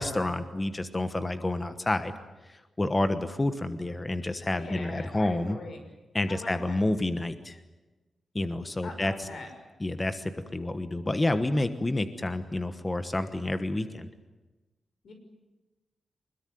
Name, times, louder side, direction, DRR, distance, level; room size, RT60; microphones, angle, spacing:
voice 1, 0.0-2.1 2.8-5.6 6.1-7.6 8.3-9.3 9.8-14.1, left 2 dB, 15° left, 10 dB, 1.2 m, -29 dB
voice 2, 4.5-5.8 6.3-6.8 8.8-9.5 15.0-15.1, left 3 dB, 60° left, 5 dB, 5.9 m, -42 dB
24.5 x 21.5 x 9.5 m, 1.1 s
wide cardioid pair, 180°, 0 cm